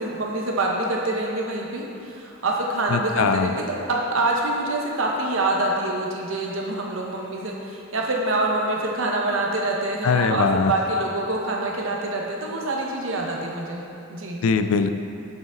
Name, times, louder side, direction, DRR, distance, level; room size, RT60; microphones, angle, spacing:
voice 1, 0.0-3.6 3.9-14.4, right 2 dB, 70° right, -1 dB, 1.0 m, -26 dB
voice 2, 2.9-3.5 10.0-10.7 14.4-14.9, left 5 dB, 85° left, 9 dB, 0.4 m, -21 dB
6.3 x 6.1 x 3.8 m, 2.7 s
head